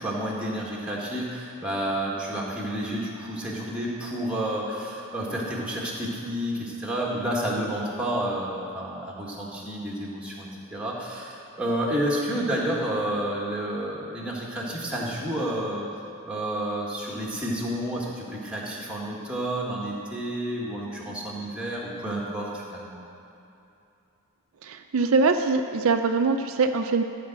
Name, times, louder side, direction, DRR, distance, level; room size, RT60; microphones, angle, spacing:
voice 1, 0.0-15.9 16.3-23.0, right 1 dB, 5° right, -4 dB, 1.6 m, -30 dB
voice 2, 24.6-27.0, right 4 dB, 70° right, 6 dB, 0.5 m, -23 dB
12.5 x 5.0 x 7.5 m, 2.8 s
head